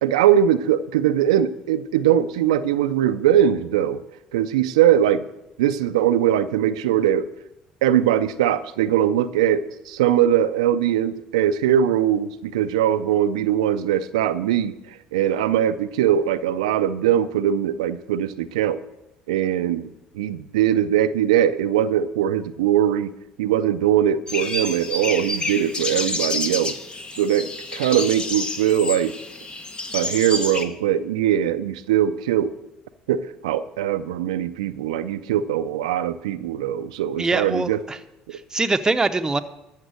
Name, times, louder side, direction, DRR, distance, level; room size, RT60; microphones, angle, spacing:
voice 1, 0.0-4.0 4.3-5.2 5.6-7.3 7.8-18.8 19.3-23.1 23.4-26.7 27.1-29.1 29.9-32.5 33.1-37.8 38.3-38.4, right 10 dB, 90° right, 11 dB, 0.4 m, -21 dB
sound 1, 24.3-30.7, left 2 dB, 30° left, 1.3 m, -29 dB
voice 2, 37.2-38.0 38.3-39.4, right 3 dB, 20° right, 9 dB, 0.9 m, -23 dB
13.0 x 7.2 x 6.4 m, 0.89 s
hypercardioid pair, 70°, 3 cm